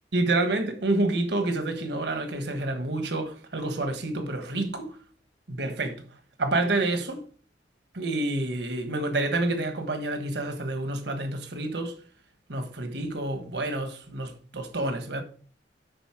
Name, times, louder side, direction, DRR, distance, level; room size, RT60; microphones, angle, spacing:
voice 1, 0.1-4.9 5.5-6.0 6.4-7.2 7.9-11.9 12.5-15.2, right 2 dB, 70° right, 1.4 m, -28 dB
10.5 x 4.1 x 4.9 m
head